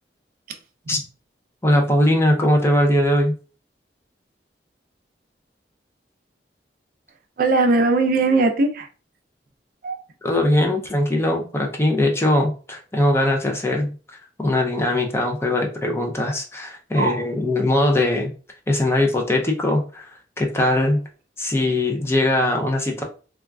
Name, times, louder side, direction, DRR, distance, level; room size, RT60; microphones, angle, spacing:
voice 1, 1.6-3.3 10.2-13.9 14.4-18.3 18.7-20.1 20.4-21.0 21.4-23.0, left 1 dB, 15° left, 0.4 m, -20 dB
voice 2, 7.4-8.9 9.8-10.0 17.0-17.2, right 3 dB, 50° right, 0.4 m, -19 dB
3.5 x 2.3 x 2.2 m
head